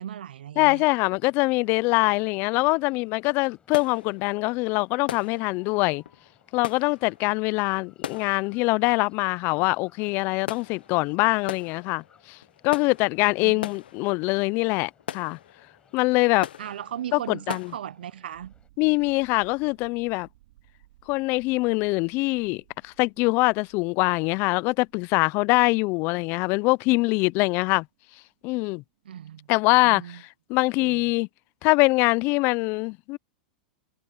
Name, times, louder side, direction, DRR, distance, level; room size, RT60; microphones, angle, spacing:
voice 1, 0.0-0.8 13.4-13.7 16.6-18.5 29.1-30.2 30.8-31.1, right 10 dB, 85° right, 0.4 m, -37 dB
voice 2, 0.6-6.0 6.5-12.4 12.6-15.4 15.9-16.5 17.1-17.7 18.8-20.3 21.1-27.9 28.4-28.8 29.5-31.3 31.6-33.2, left 25 dB, 45° left, 0.4 m, -23 dB
sound 1, 0.8-18.7, left 6 dB, 20° left, 4.9 m, -62 dB
sound 2, 3.7-17.8, left 10 dB, 85° left, 0.8 m, -41 dB
sound 3, 18.3-31.6, right 16 dB, 65° right, 7.7 m, -61 dB
hypercardioid pair, 120°, 5 cm